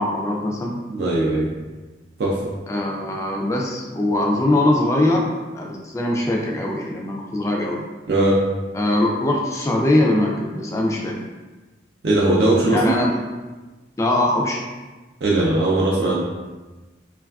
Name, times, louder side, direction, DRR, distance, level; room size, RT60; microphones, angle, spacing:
voice 1, 0.0-0.8 2.7-5.3 5.5-7.8 8.7-11.1 12.7-13.2 14.0-14.6, left 1 dB, 15° left, -1 dB, 0.3 m, -21 dB
voice 2, 0.9-1.5 2.2-2.4 8.1-8.4 12.0-13.0 15.2-16.2, right 2 dB, 65° right, -5 dB, 0.4 m, -19 dB
3.2 x 2.4 x 2.3 m, 1.2 s
head